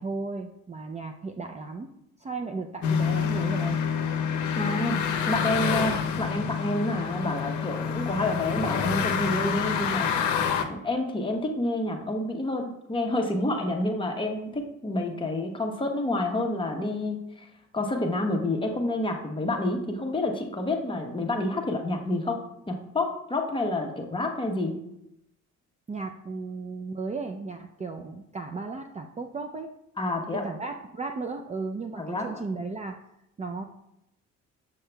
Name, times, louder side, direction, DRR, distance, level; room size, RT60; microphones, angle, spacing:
voice 1, 0.0-1.9 2.2-3.8 25.9-29.7 30.4-33.0 33.4-33.6, right 3 dB, 25° right, 4 dB, 0.4 m, -35 dB
sound 1, 2.8-10.6, left 7 dB, 75° left, 0.7 m, -27 dB
voice 2, 4.5-10.3 10.7-17.5 17.7-22.4 22.7-24.8 30.0-30.4 32.0-32.4, left 2 dB, 15° left, 2 dB, 1.0 m, -29 dB
6.9 x 6.3 x 2.2 m, 0.83 s
cardioid pair, 90°, 30 cm